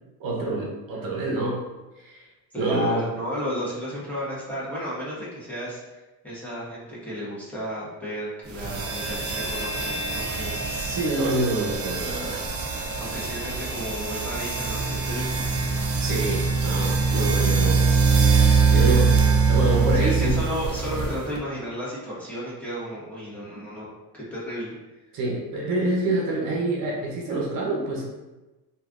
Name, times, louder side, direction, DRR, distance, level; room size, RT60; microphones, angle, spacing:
voice 1, 0.2-1.6 2.0-2.3 2.6-3.0 10.7-12.4 12.8-12.9 13.2-13.3 16.0-17.8 18.2-19.2 19.5-20.4 25.1-28.1, right 2 dB, 60° right, -3 dB, 0.8 m, -27 dB
voice 2, 2.5-11.0 13.0-15.3 19.9-24.7, equal, 5° left, -9 dB, 1.2 m, -33 dB
sound 1, 8.5-21.4, right 4 dB, 40° right, 0.5 m, -23 dB
3.1 x 2.5 x 2.4 m, 1.1 s
supercardioid pair, 90°, 38 cm